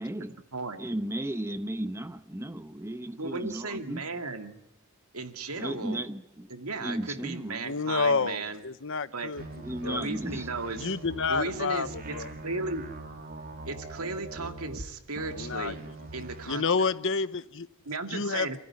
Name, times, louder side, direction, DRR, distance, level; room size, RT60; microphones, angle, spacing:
voice 1, 0.0-0.4 0.8-4.0 5.6-6.5 6.8-7.7 9.6-10.5, right 1 dB, 10° right, 1.0 m, -35 dB
voice 2, 3.2-4.6 5.1-6.0 6.5-8.6 9.1-9.3 9.8-10.9 11.3-12.9 13.7-15.8 16.1-16.6 17.9-18.6, right 3 dB, 80° right, 2.4 m, -35 dB
voice 3, 7.6-9.4 9.8-10.0 10.8-12.3 15.3-15.7 16.5-17.7 18.1-18.6, left 4 dB, 60° left, 1.0 m, -29 dB
sound 1, 9.4-14.9 15.1-16.5, right 2 dB, 45° right, 2.6 m, -42 dB
27.5 x 14.5 x 10.0 m
head